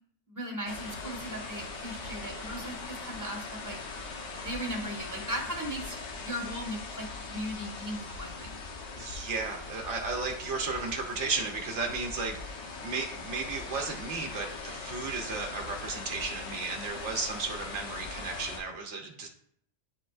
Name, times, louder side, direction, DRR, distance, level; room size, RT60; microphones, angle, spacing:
voice 1, 0.3-3.8 4.4-8.6, equal, 15° right, 0 dB, 1.6 m, -37 dB
sound 1, 0.7-18.6, left 4 dB, 90° left, 1.3 m, -41 dB
voice 2, 9.0-19.3, right 4 dB, 85° right, 2 dB, 1.2 m, -34 dB
10.0 x 4.5 x 2.5 m, 0.67 s
omnidirectional pair, 1.2 m